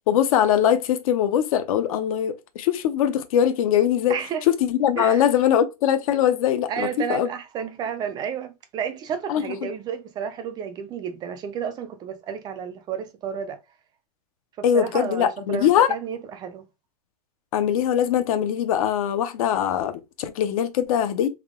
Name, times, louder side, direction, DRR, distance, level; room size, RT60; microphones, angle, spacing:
voice 1, 0.1-4.2 4.5-7.3 9.3-9.7 14.6-16.0 17.5-21.3, left 9 dB, 60° left, 0.7 m, -22 dB
voice 2, 4.1-4.4 5.0-5.2 6.7-13.6 14.7-16.6, right 7 dB, 20° right, 0.4 m, -31 dB
3.5 x 2.8 x 3.6 m
supercardioid pair, 150°, 20 cm